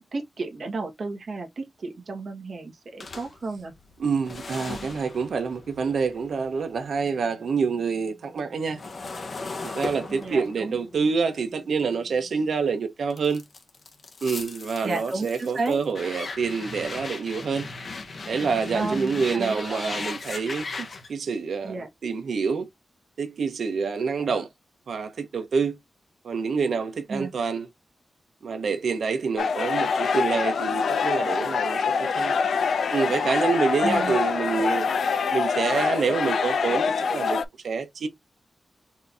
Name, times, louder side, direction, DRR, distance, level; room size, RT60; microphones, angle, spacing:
voice 1, 0.0-3.7 10.1-10.8 14.8-15.8 18.7-19.9 21.6-21.9 27.1-27.5 33.8-34.2, right 3 dB, 55° right, 1.4 m, -32 dB
sound 1, 3.0-7.3 7.6-12.5 13.1-21.1, left 3 dB, 45° left, 1.0 m, -38 dB
voice 2, 4.0-8.8 9.6-13.4 14.2-17.7 18.3-22.7 23.2-24.5 24.9-25.8 26.2-27.7 28.4-32.3 32.9-34.9 35.3-38.1, right 5 dB, 75° right, 0.8 m, -27 dB
sound 2, 29.4-37.4, left 5 dB, 80° left, 0.5 m, -25 dB
4.4 x 2.7 x 3.4 m
wide cardioid pair, 155°, 0 cm